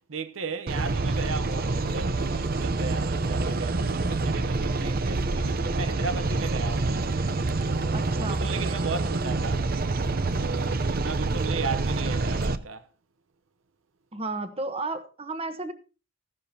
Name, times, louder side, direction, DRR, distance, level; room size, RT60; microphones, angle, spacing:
voice 1, 0.1-7.1 7.6-9.7 10.4-12.9, right 4 dB, 80° right, 0.9 m, -36 dB
sound 1, 0.7-12.6, right 3 dB, 45° right, 0.7 m, -27 dB
voice 2, 7.9-8.4 14.1-15.7, right 2 dB, 30° right, 1.1 m, -33 dB
15.5 x 12.0 x 2.8 m
head